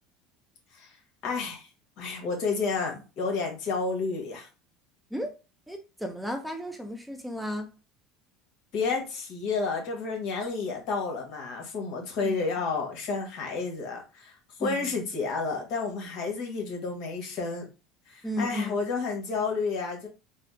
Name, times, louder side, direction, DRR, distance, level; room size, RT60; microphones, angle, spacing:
voice 1, 1.2-1.7 2.0-4.5 8.7-17.7 18.1-20.1, left 4 dB, 65° left, 1.4 m, -31 dB
voice 2, 5.7-7.7 12.2-12.4 14.6-14.9 18.2-18.8, equal, 5° right, 0.6 m, -34 dB
4.2 x 2.0 x 2.7 m
hypercardioid pair, 85°, 0 cm